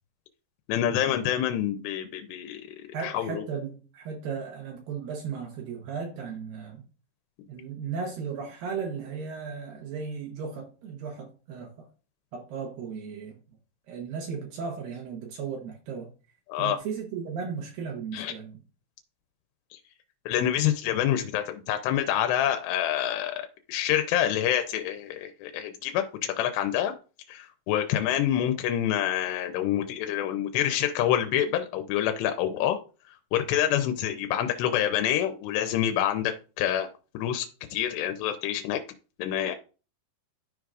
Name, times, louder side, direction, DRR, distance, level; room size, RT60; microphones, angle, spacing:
voice 1, 0.7-3.4 16.5-16.8 18.1-18.3 19.7-19.8 20.3-23.3 23.7-26.9 27.3-32.8 33.3-36.9 37.1-38.8 39.2-39.6, left 11 dB, 90° left, 2.8 m, -27 dB
voice 2, 2.9-6.8 7.5-11.9 12.3-13.4 13.9-16.1 16.6-18.6, right 6 dB, 70° right, 2.5 m, -36 dB
13.0 x 4.7 x 2.5 m
omnidirectional pair, 4.7 m